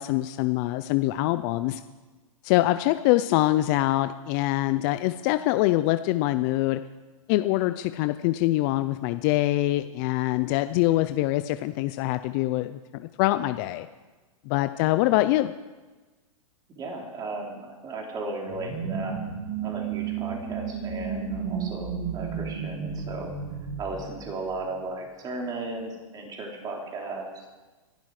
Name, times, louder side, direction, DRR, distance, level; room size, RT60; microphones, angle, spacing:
voice 1, 0.0-1.8 2.4-6.8 7.3-13.9 14.5-15.5, left 16 dB, 35° left, 11 dB, 0.5 m, -24 dB
voice 2, 16.8-19.2 19.6-23.3 23.8-27.5, right 2 dB, 20° right, 0 dB, 3.4 m, -36 dB
sound 1, 18.5-24.9, right 6 dB, 45° right, 2.9 m, -33 dB
24.0 x 12.0 x 4.9 m, 1.2 s
hypercardioid pair, 150°, 18 cm